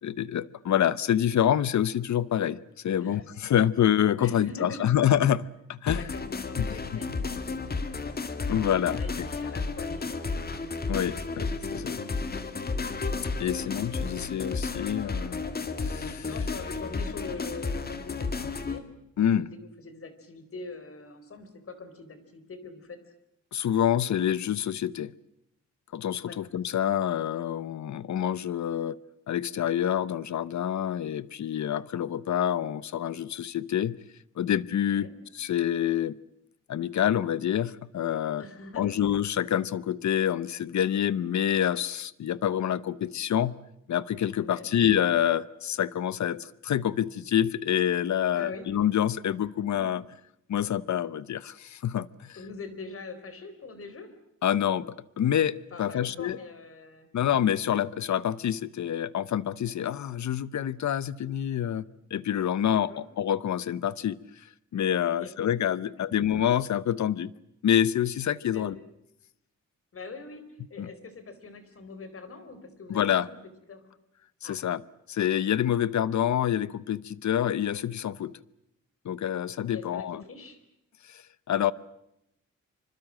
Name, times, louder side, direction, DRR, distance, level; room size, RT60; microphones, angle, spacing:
voice 1, 0.0-6.1 6.6-6.7 8.5-9.3 10.9-12.0 13.4-15.5 15.8-16.3 19.2-19.5 23.5-25.1 25.9-29.0 29.3-34.0 34.4-36.2 36.7-38.4 38.8-43.5 43.9-50.0 50.5-52.4 54.4-56.4 57.1-61.9 62.1-64.5 64.7-67.3 67.6-68.8 70.8-70.9 72.9-73.3 74.4-74.8 75.1-78.4 79.0-80.2 81.1-81.7, left 10 dB, 65° left, 0.9 m, -27 dB
voice 2, 4.2-4.9 5.9-8.2 8.8-10.5 14.0-14.1 16.2-18.8 19.2-23.0 26.2-26.4 34.9-35.1 38.4-38.9 44.4-44.7 48.3-48.7 49.5-49.8 52.4-54.1 55.7-57.1 62.7-63.0 65.1-65.3 68.5-68.7 69.9-73.0 73.3-73.4 73.7-73.8 74.4-74.6 79.7-80.6, left 3 dB, 45° left, 4.4 m, -43 dB
sound 1, 5.9-18.8, left 4 dB, 30° left, 2.1 m, -32 dB
26.0 x 25.5 x 7.6 m
wide cardioid pair, 160°, 31 cm